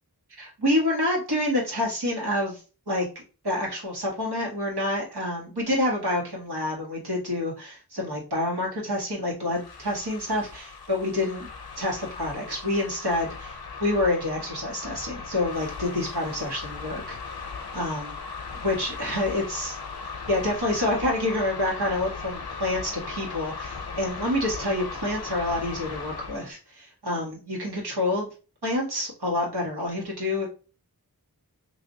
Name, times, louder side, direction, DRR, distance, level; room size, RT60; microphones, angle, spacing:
voice 1, 0.4-3.1 3.4-11.5 11.8-13.5 13.8-17.2 17.7-18.1 18.5-19.8 20.3-28.3 28.6-30.5, left 1 dB, 80° right, -3 dB, 1.5 m, -28 dB
sound 1, 9.5-26.5, left 5 dB, 70° left, 0.6 m, -38 dB
3.3 x 2.8 x 2.6 m, 0.34 s
wide cardioid pair, 45°, 39 cm